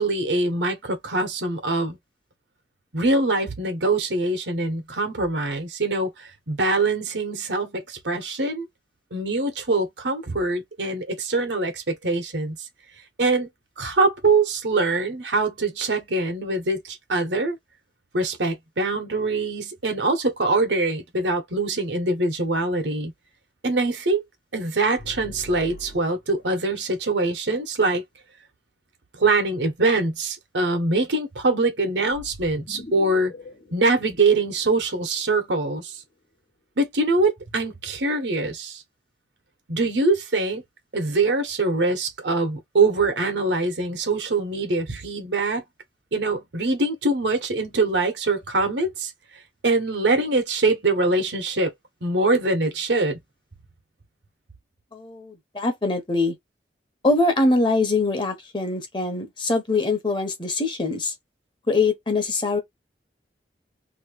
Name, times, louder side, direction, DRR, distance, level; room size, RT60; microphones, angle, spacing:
voice 1, 0.0-2.0 2.9-8.7 9.1-12.6 13.2-13.5 13.8-17.6 18.1-23.1 23.6-24.2 24.5-28.0 29.1-33.3 33.7-36.0 36.8-38.8 39.7-40.6 40.9-45.6 46.1-49.1 49.6-51.7 52.0-53.2, right 2 dB, 85° right, 1.2 m, -23 dB
sound 1, 25.0-26.5 32.1-35.2, left 1 dB, 50° left, 0.7 m, -42 dB
voice 2, 54.9-56.3 57.0-61.1 61.7-62.6, left 3 dB, 25° left, 0.9 m, -23 dB
3.0 x 2.7 x 3.0 m
head